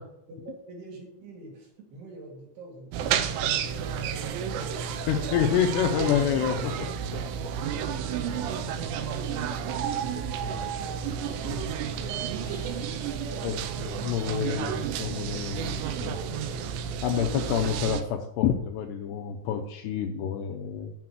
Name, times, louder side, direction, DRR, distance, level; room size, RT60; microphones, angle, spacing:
voice 1, 0.4-5.7 7.6-9.2 10.6-12.0 13.2-13.8, right 2 dB, 60° right, -1 dB, 4.0 m, -47 dB
sound 1, 2.9-18.0, right 8 dB, 80° right, 2.7 m, -31 dB
voice 2, 5.1-6.9 7.4-7.5 10.1-10.8 11.4-11.6 12.4-13.2 13.4-13.5 13.8-16.2 16.7-20.9, left 9 dB, 80° left, 3 dB, 2.5 m, -29 dB
7.7 x 6.8 x 7.4 m, 0.82 s
omnidirectional pair, 5.5 m